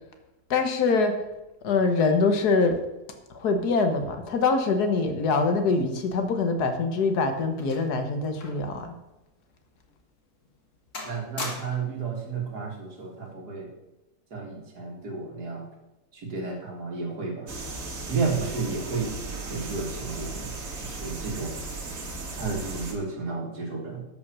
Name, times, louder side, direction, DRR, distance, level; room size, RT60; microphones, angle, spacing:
voice 1, 0.5-1.2 1.6-2.8 3.3-8.9, left 4 dB, 80° left, 6 dB, 1.7 m, -24 dB
sound 1, 6.6-8.8 9.0-9.2 9.8-10.0 10.4-10.7 10.9-12.0 13.0-13.3, left 3 dB, 50° left, 2.0 m, -40 dB
voice 2, 11.0-13.7 14.3-15.7 16.1-17.6 18.1-19.1 19.4-21.6 22.3-24.0, right 4 dB, 85° right, 1 dB, 2.6 m, -32 dB
sound 2, 17.5-22.9, right 3 dB, 60° right, 2.0 m, -36 dB
12.5 x 5.6 x 6.1 m, 0.99 s
omnidirectional pair, 1.7 m